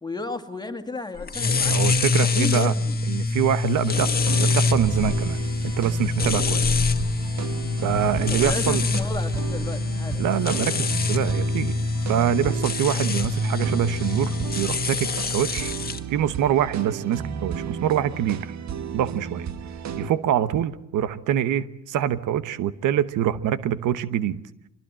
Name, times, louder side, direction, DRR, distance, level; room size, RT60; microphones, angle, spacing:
voice 1, 0.0-3.0 8.3-10.2 10.7-10.9, left 3 dB, 15° left, 6 dB, 2.4 m, -33 dB
sound 1, 1.3-16.0, left 4 dB, 30° left, 1.8 m, -25 dB
voice 2, 1.6-2.7 3.1-6.8 7.8-8.8 10.2-11.8 12.1-15.7 16.1-18.6 18.9-19.5 20.0-24.4, right 10 dB, 85° right, 14 dB, 1.1 m, -25 dB
sound 2, 3.9-20.1, right 7 dB, 65° right, 1.6 m, -34 dB
25.5 x 21.0 x 7.6 m, 0.81 s
cardioid pair, 90°, 30 cm